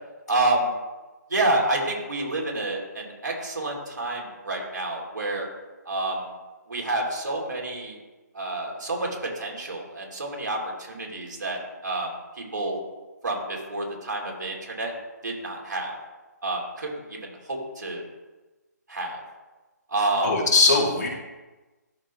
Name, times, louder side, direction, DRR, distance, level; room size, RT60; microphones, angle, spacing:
voice 1, 0.3-0.7 1.3-5.5 5.8-6.3 6.7-8.0 8.3-9.1 9.3-12.8 13.2-14.9 15.2-16.0 16.4-18.0 18.9-19.2 19.9-20.3, right 2 dB, 80° right, -2 dB, 2.9 m, -28 dB
voice 2, 20.0-21.1, left 3 dB, 70° left, -2 dB, 2.5 m, -21 dB
12.0 x 5.4 x 3.1 m, 1.2 s
figure-of-eight pair, 150°, 10 cm